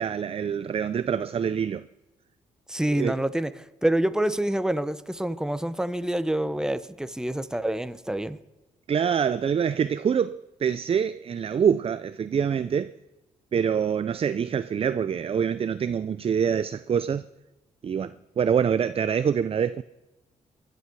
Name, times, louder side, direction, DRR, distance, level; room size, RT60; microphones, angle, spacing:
voice 1, 0.0-1.9 2.9-3.2 8.9-12.9 13.5-17.2 17.8-19.8, right 7 dB, 45° right, 0.5 m, -25 dB
voice 2, 2.7-3.5 3.8-8.4, right 1 dB, 5° right, 0.9 m, -27 dB
21.0 x 11.5 x 4.8 m
supercardioid pair, 55°, 14 cm